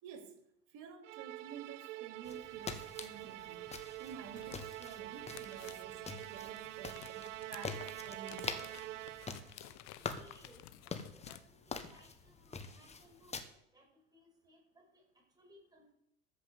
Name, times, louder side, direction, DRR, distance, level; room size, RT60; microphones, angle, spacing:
voice 1, 0.0-0.4 0.7-8.7, right 7 dB, 50° right, 2.8 m, -51 dB
Musical instrument, 1.0-9.6, right 16 dB, 70° right, 0.6 m, -46 dB
sound 1, 2.2-13.4, left 5 dB, 15° left, 1.4 m, -46 dB
sound 2, 4.1-11.4, left 14 dB, 45° left, 1.0 m, -55 dB
voice 2, 9.6-15.0 15.4-15.9, equal, 10° right, 5.9 m, -64 dB
13.5 x 6.0 x 8.0 m
hypercardioid pair, 85°, 39 cm